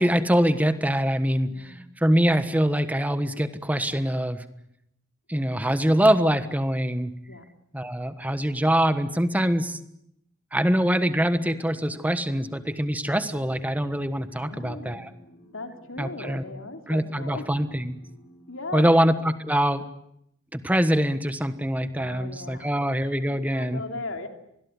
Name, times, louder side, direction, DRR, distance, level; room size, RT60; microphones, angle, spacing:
voice 1, 0.0-1.7 2.0-4.4 5.3-7.1 7.7-9.8 10.5-15.1 16.0-16.4 16.9-17.9 18.7-19.8 20.5-23.8, equal, 5° right, 11 dB, 1.3 m, -24 dB
voice 2, 1.5-1.9 7.3-7.5 14.4-15.1 15.5-17.7 18.5-18.9 22.0-22.8 23.3-24.3, left 2 dB, 75° left, 5 dB, 3.4 m, -38 dB
sound 1, 10.8-19.6, left 1 dB, 50° left, 6.7 m, -52 dB
25.5 x 20.5 x 9.6 m, 0.78 s
head